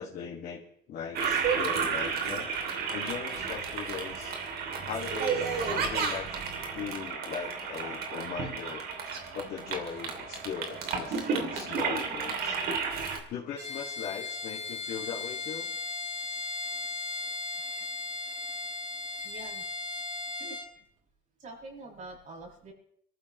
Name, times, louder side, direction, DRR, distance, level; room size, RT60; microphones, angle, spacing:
voice 1, 0.0-2.5 2.9-4.3 4.9-6.3 6.7-8.8 9.3-12.6 13.3-15.7, left 7 dB, 70° left, -6 dB, 2.4 m, -39 dB
Toilet flush, 1.1-13.2, right 5 dB, 70° right, 3.0 m, -32 dB
Bowed string instrument, 13.5-20.7, left 3 dB, 30° right, 4.8 m, -36 dB
voice 2, 19.2-19.6 20.4-20.8 21.4-22.7, right 2 dB, 50° right, -1 dB, 6.9 m, -46 dB
26.0 x 14.0 x 3.2 m, 0.69 s
cardioid pair, 110°, 17 cm